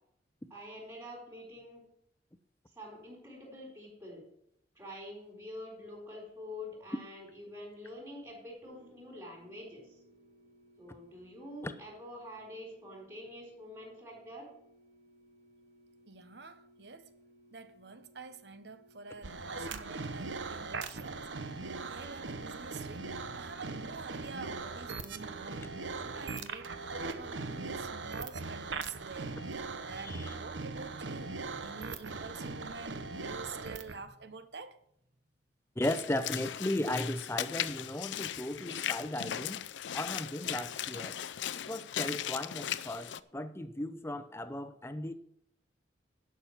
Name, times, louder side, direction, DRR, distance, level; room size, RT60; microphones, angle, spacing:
voice 1, 0.5-1.8 2.7-4.2 4.7-10.0 10.8-14.5, left 1 dB, 20° right, 4.3 m, -46 dB
sound 1, 8.6-27.8, right 5 dB, 40° right, 1.7 m, -59 dB
voice 2, 16.1-17.1 17.5-21.3 21.7-23.1 23.3-34.8, right 4 dB, 60° right, 0.9 m, -48 dB
sound 2, 19.2-34.0, right 4 dB, 90° right, 0.9 m, -40 dB
Walk footsteps / Splash splatter, 35.8-43.2, left 10 dB, 80° left, 0.5 m, -38 dB
voice 3, 35.8-39.6 39.9-41.1 41.7-45.1, left 1 dB, 15° left, 0.7 m, -36 dB
11.5 x 6.1 x 7.3 m
head